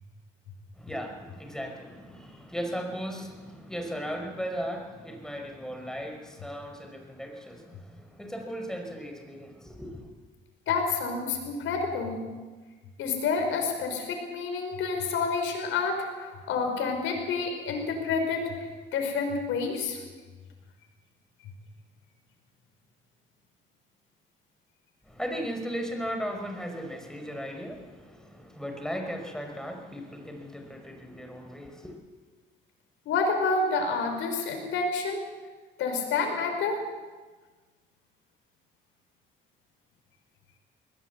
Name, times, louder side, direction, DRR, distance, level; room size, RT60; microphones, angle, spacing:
voice 1, 0.7-10.1 25.0-32.0, equal, 5° left, 4 dB, 5.1 m, -37 dB
voice 2, 10.7-12.2 13.0-20.0 33.1-35.2 35.8-36.8, left 4 dB, 85° left, 4 dB, 5.1 m, -29 dB
21.0 x 18.0 x 8.2 m, 1.4 s
cardioid pair, 90°, 20 cm